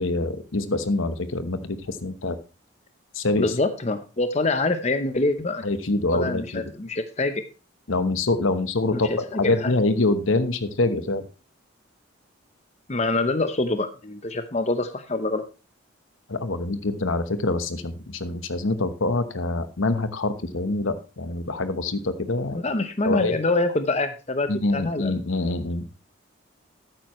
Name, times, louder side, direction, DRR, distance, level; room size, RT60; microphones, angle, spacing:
voice 1, 0.0-2.4 3.1-3.5 5.6-6.6 7.9-11.3 16.3-22.6 23.0-23.4 24.5-25.9, left 2 dB, 80° left, 10 dB, 1.1 m, -25 dB
voice 2, 3.4-5.7 6.1-7.4 8.9-9.7 12.9-15.4 22.6-25.2, left 2 dB, 35° left, 9 dB, 0.7 m, -25 dB
12.5 x 9.0 x 3.1 m, 0.30 s
head